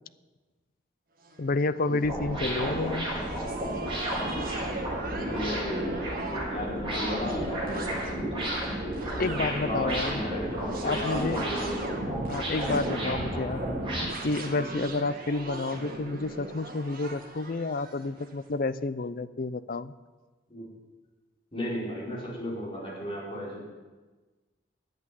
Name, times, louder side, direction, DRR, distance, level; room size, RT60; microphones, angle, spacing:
sound 1, 1.2-18.3, right 1 dB, 50° right, 1.8 m, -39 dB
voice 1, 1.4-3.1 9.2-10.2 10.8-11.4 12.3-13.6 14.2-19.9, left 3 dB, 50° left, 14 dB, 0.5 m, -30 dB
sound 2, 2.0-14.1, right 1 dB, 25° right, 5.4 m, -32 dB
voice 2, 5.1-8.5 9.1-12.1 20.5-20.7 21.5-23.6, equal, 30° left, -6 dB, 5.1 m, -35 dB
10.5 x 8.5 x 9.2 m, 1.3 s
head